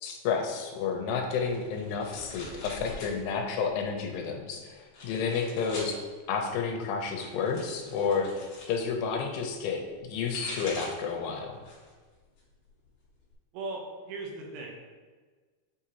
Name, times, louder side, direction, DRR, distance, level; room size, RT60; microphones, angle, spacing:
voice 1, 0.0-11.6, left 5 dB, 85° left, 2 dB, 3.1 m, -31 dB
sound 1, 1.4-3.2 3.5-4.1 4.8-6.0 7.0-8.7 10.0-11.1 11.5-12.0 12.4-13.3, left 2 dB, 45° left, 2.6 m, -43 dB
voice 2, 13.5-14.9, right 2 dB, 85° right, 0 dB, 3.4 m, -38 dB
8.1 x 4.9 x 2.9 m, 1.4 s
omnidirectional pair, 5.6 m